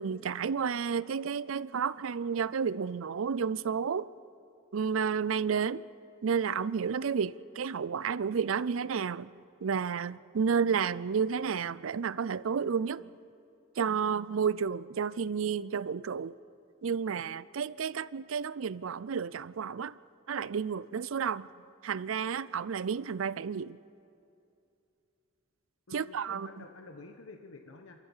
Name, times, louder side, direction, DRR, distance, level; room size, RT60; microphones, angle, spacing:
voice 1, 0.0-4.1 4.7-5.9 6.2-9.3 9.6-13.0 13.8-16.4 16.8-20.0 20.3-21.5 21.8-23.8 25.9-26.5, right 6 dB, 75° right, 19 dB, 0.5 m, -31 dB
voice 2, 25.9-28.0, left 3 dB, 85° left, 5 dB, 1.1 m, -49 dB
28.0 x 14.0 x 7.3 m, 2.6 s
head